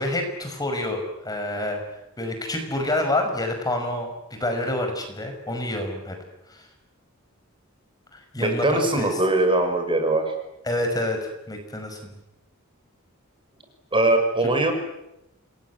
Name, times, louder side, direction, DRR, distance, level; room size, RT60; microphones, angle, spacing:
voice 1, 0.0-1.8 2.2-6.2 6.5-6.7 8.1-9.2 10.6-12.1, left 1 dB, 20° left, 4 dB, 5.7 m, -28 dB
voice 2, 8.4-10.3 13.9-14.7, right 2 dB, 25° right, 6 dB, 5.8 m, -21 dB
28.5 x 21.5 x 9.7 m, 0.87 s
head